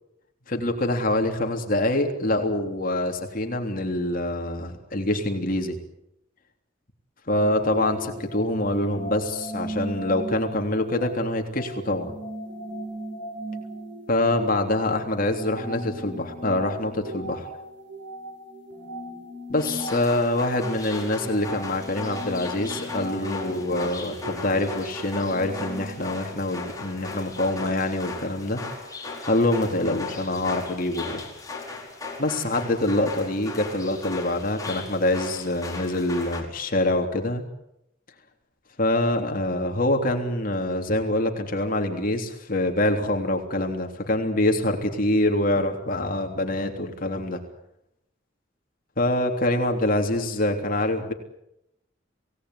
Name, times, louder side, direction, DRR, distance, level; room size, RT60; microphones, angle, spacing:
voice 1, 0.5-5.7 7.3-12.1 14.1-17.5 19.5-28.6 29.3-31.2 32.2-37.4 38.8-47.4 49.0-51.1, left 1 dB, 45° left, 4 dB, 3.4 m, -25 dB
sound 1, 7.3-26.1, equal, 60° right, 6.8 m, -38 dB
sound 2, 19.6-36.4, left 3 dB, 20° left, 5.1 m, -37 dB
27.0 x 18.5 x 10.0 m, 0.84 s
head